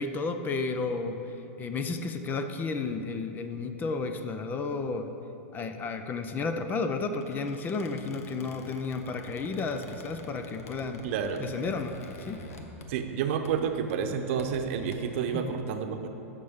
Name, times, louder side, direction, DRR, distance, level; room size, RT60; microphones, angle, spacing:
voice 1, 0.0-5.1 5.5-11.0 11.4-12.0 12.3-12.4 15.3-15.5, left 4 dB, 25° left, 7 dB, 0.5 m, -32 dB
Squeak, 7.1-13.2 13.4-13.7 14.2-14.9, left 3 dB, 80° left, 1.1 m, -47 dB
voice 2, 11.0-11.5 12.9-16.1, right 7 dB, 60° right, 6 dB, 0.8 m, -30 dB
14.5 x 6.5 x 3.7 m, 3.0 s
hypercardioid pair, 130°, 8 cm